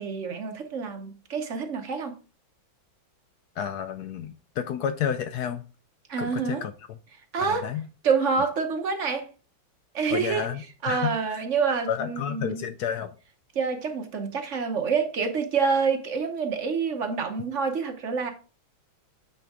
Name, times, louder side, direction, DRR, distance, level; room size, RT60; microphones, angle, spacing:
voice 1, 0.0-2.2 6.1-6.6 7.3-7.7 8.0-9.3 9.9-10.5 10.8-12.7 13.5-18.3, right 5 dB, 45° right, 1.1 m, -27 dB
voice 2, 3.6-5.6 6.2-7.0 7.4-7.8 10.1-11.4 11.9-13.1, left 8 dB, 75° left, 0.9 m, -31 dB
9.0 x 4.5 x 3.6 m
omnidirectional pair, 2.1 m